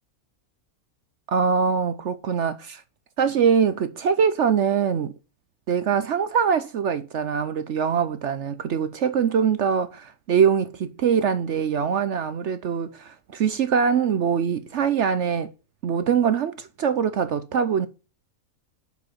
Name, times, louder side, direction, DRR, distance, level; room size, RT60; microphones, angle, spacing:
voice 1, 1.3-2.8 3.2-5.1 5.7-15.5 15.8-17.9, right 7 dB, 60° right, 0.9 m, -23 dB
6.9 x 5.6 x 5.8 m
omnidirectional pair, 1.5 m